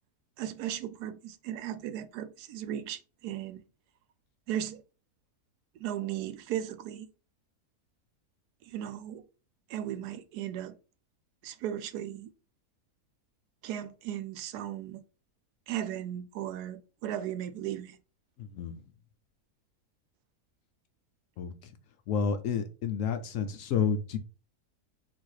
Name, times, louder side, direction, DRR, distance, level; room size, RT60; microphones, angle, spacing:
voice 1, 0.4-3.6 4.5-4.8 5.7-7.1 8.6-9.3 9.7-10.8 11.4-12.3 13.6-15.0 15.7-18.0, right 11 dB, 85° right, 1.1 m, -36 dB
voice 2, 18.4-18.8 21.4-21.7 22.1-24.2, left 6 dB, 70° left, 0.8 m, -30 dB
4.0 x 2.5 x 4.7 m
omnidirectional pair, 1.6 m